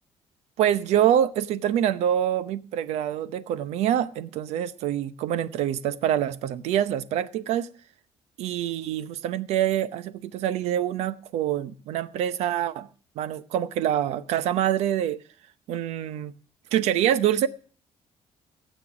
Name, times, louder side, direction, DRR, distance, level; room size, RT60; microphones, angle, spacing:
voice 1, 0.6-7.7 8.4-12.9 13.2-15.2 15.7-16.3 16.7-17.5, right 11 dB, 90° right, 0.8 m, -25 dB
16.0 x 8.2 x 6.0 m
cardioid pair, 150°, 11 cm